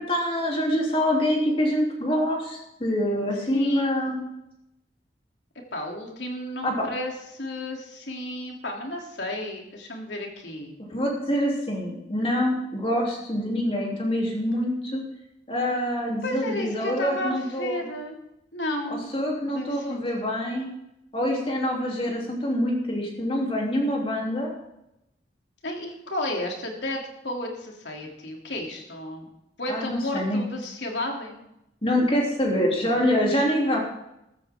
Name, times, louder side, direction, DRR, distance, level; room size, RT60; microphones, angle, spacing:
voice 1, 0.0-4.2 6.6-6.7 10.9-15.0 15.5-17.8 18.9-20.7 21.1-24.5 29.7-30.4 31.8-33.8, equal, 30° left, -1 dB, 3.3 m, -25 dB
voice 2, 3.5-3.9 5.7-10.7 16.2-18.2 18.5-19.1 19.5-20.0 25.6-29.3 29.6-31.4, left 1 dB, 90° left, 1 dB, 3.2 m, -32 dB
14.0 x 14.0 x 3.8 m, 0.84 s
head